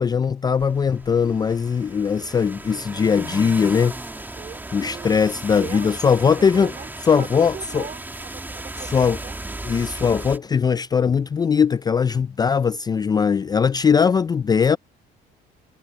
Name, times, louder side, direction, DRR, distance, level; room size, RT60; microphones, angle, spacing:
voice 1, 0.0-4.0 4.7-6.7 7.0-7.9 8.9-9.2 9.6-14.8, left 6 dB, 25° left, 0.4 m, -20 dB
sound 1, 0.6-10.4, right 2 dB, 10° right, 2.6 m, -36 dB
voice 2, 4.4-5.2 5.5-9.4, right 7 dB, 40° right, 4.2 m, -39 dB
cardioid pair, 110°, 17 cm